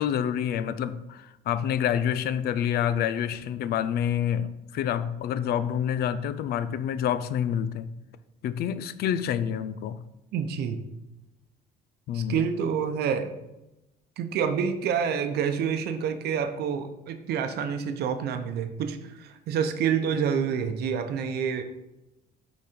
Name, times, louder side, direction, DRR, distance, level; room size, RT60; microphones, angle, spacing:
voice 1, 0.0-7.9 8.4-10.0 12.1-12.4, left 9 dB, 70° left, 0.5 m, -28 dB
voice 2, 10.3-10.8 12.1-13.3 14.2-21.6, right 7 dB, 70° right, 0.8 m, -28 dB
8.3 x 4.1 x 5.1 m
cardioid pair, 110°, 17 cm